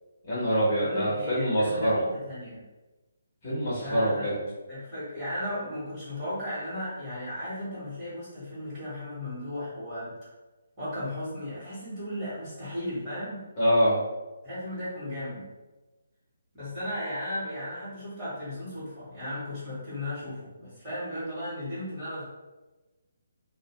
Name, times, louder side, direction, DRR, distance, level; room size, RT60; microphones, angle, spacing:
voice 1, 0.3-2.0 3.4-4.4 13.6-14.0, equal, 25° left, -10 dB, 0.8 m, -25 dB
voice 2, 0.8-2.6 3.8-4.3 4.7-10.1 10.8-13.4 14.4-15.4 16.5-22.2, left 1 dB, 15° right, -13 dB, 1.1 m, -35 dB
2.6 x 2.1 x 2.9 m, 1.1 s
hypercardioid pair, 175°, 0 cm